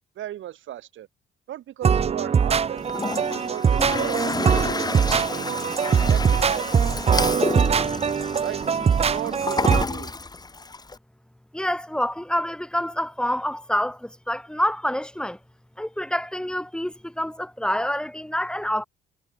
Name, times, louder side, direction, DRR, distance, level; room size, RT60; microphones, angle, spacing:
voice 1, 0.1-1.1 1.5-2.8 3.2-4.3 4.8-5.7 6.0-6.7 7.2-7.8 8.4-8.6 9.1-10.1, right 12 dB, 75° right, 3.2 m, -36 dB
sound 1, 1.8-9.8, right 6 dB, 30° right, 0.5 m, -22 dB
Toilet flush, 2.8-11.0, left 3 dB, 20° left, 1.5 m, -30 dB
voice 2, 11.5-15.4 15.8-18.8, equal, 5° left, 5.6 m, -27 dB
cardioid pair, 90°, 20 cm